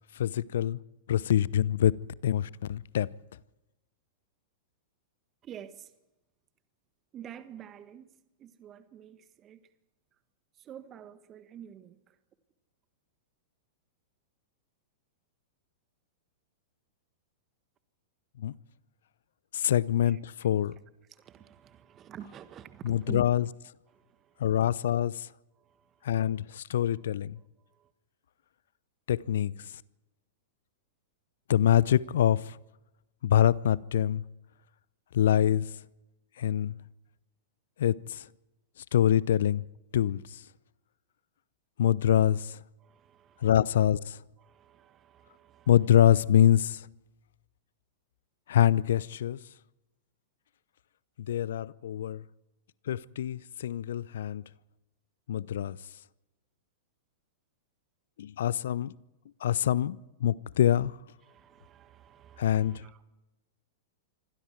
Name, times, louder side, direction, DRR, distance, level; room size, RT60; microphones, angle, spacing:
voice 1, 0.2-0.8 1.1-1.9 2.2-3.1 18.4-18.5 19.5-20.7 22.8-23.4 24.4-25.3 26.0-27.4 29.1-29.7 31.5-32.6 33.2-34.2 35.1-35.7 36.4-36.8 37.8-38.2 38.9-39.6 39.9-40.4 41.8-42.6 43.4-44.2 45.7-46.9 48.5-49.4 51.2-52.2 52.9-54.4 55.3-55.8 58.2-58.9 59.4-60.9 62.4-62.8, left 11 dB, 65° left, 0.7 m, -25 dB
voice 2, 5.4-5.9 7.1-9.7 10.5-12.2 20.0-23.5 23.9-24.6 25.6-26.5 26.9-27.1 27.7-27.9 42.8-43.7 44.4-46.0 61.2-63.0, right 9 dB, 30° right, 1.5 m, -49 dB
27.0 x 25.0 x 4.7 m
figure-of-eight pair, 100°, 0 cm